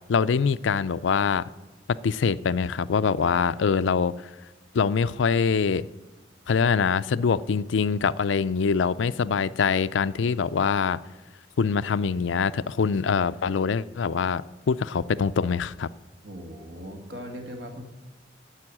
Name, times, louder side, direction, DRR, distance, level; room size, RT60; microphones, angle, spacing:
voice 1, 0.1-1.5 1.9-4.1 4.7-5.9 6.5-11.0 11.6-14.4 14.7-15.9, left 5 dB, 85° left, 16 dB, 0.4 m, -24 dB
voice 2, 16.2-17.8, equal, 70° right, 4 dB, 2.1 m, -39 dB
10.5 x 7.9 x 9.9 m, 1.2 s
head